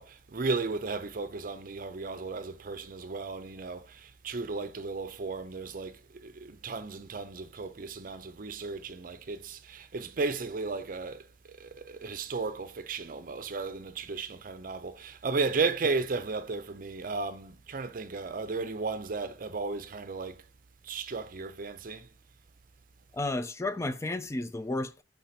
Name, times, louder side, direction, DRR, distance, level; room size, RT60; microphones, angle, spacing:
voice 1, 0.0-11.2 11.6-20.4 20.9-22.1, right 4 dB, 50° right, 0.6 m, -34 dB
voice 2, 23.1-25.0, left 2 dB, 15° left, 0.4 m, -32 dB
5.5 x 3.5 x 5.8 m
head